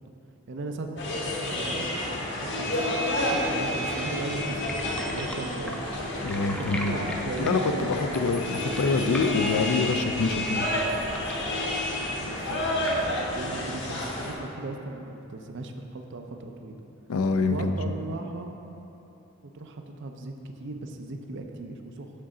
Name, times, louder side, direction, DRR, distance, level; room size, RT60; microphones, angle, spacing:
voice 1, 0.5-5.8 6.6-7.9 11.9-12.9 13.3-16.8 17.5-18.5 19.4-22.1, right 2 dB, 60° right, 5 dB, 0.5 m, -38 dB
sound 1, 1.0-14.3, left 1 dB, 55° left, 1.0 m, -30 dB
sound 2, 4.1-13.5, equal, 5° left, 0.4 m, -42 dB
voice 2, 6.2-6.9 7.4-10.7 17.1-17.8, left 4 dB, 85° left, 8 dB, 0.4 m, -26 dB
6.5 x 3.8 x 6.0 m, 2.9 s
head